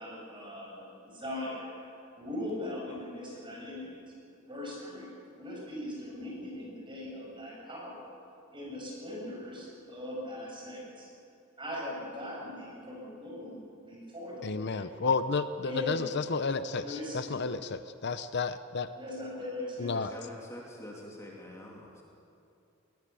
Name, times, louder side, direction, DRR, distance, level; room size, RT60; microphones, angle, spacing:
voice 1, 0.0-4.1 4.5-5.1 5.4-8.1 8.5-11.1 11.6-13.6 13.9-14.8 15.6-16.1 16.7-17.4 18.9-20.0, left 1 dB, 25° right, -3 dB, 7.3 m, -40 dB
voice 2, 14.4-18.9 19.8-20.1, left 4 dB, 55° left, 12 dB, 0.7 m, -31 dB
voice 3, 19.9-22.0, left 1 dB, 15° left, -2 dB, 2.7 m, -45 dB
21.0 x 20.5 x 7.0 m, 2.8 s
head